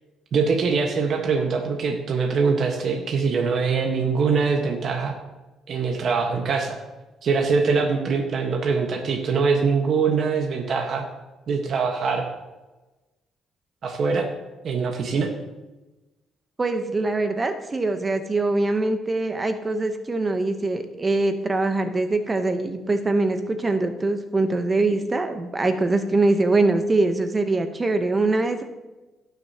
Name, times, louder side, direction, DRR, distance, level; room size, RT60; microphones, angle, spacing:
voice 1, 0.3-5.1 5.7-6.8 7.2-11.0 11.5-12.3 13.8-14.3 14.6-15.3, right 5 dB, 60° right, 2 dB, 1.3 m, -23 dB
voice 2, 16.6-28.6, right 2 dB, 25° right, 8 dB, 0.8 m, -23 dB
16.5 x 6.6 x 2.8 m, 1.1 s
cardioid pair, 95°, 0 cm